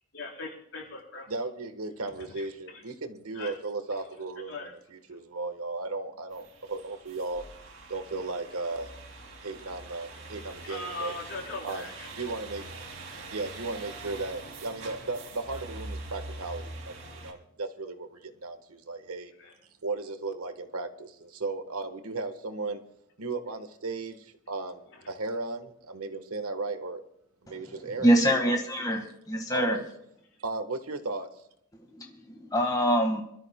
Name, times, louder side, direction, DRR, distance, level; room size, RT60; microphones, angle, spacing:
voice 1, 0.1-1.3 2.0-2.8 3.3-3.5 3.9-4.0 4.4-4.7 10.4-12.1 13.4-13.5 19.4-19.5 24.9-25.1, left 3 dB, 60° left, -1 dB, 4.1 m, -40 dB
voice 2, 1.3-4.5 5.1-7.4 7.9-8.9 9.4-11.1 11.6-11.8 12.2-12.7 13.3-19.3 19.8-22.8 23.2-27.0 27.4-28.1 28.4-28.6 29.5-29.8 30.4-31.4, right 3 dB, 90° right, 9 dB, 1.3 m, -35 dB
sound 1, 6.3-17.3, right 2 dB, 65° right, 2.4 m, -44 dB
voice 3, 28.0-29.8 31.9-33.2, equal, 15° left, 3 dB, 1.6 m, -25 dB
27.0 x 13.0 x 2.2 m, 0.76 s
head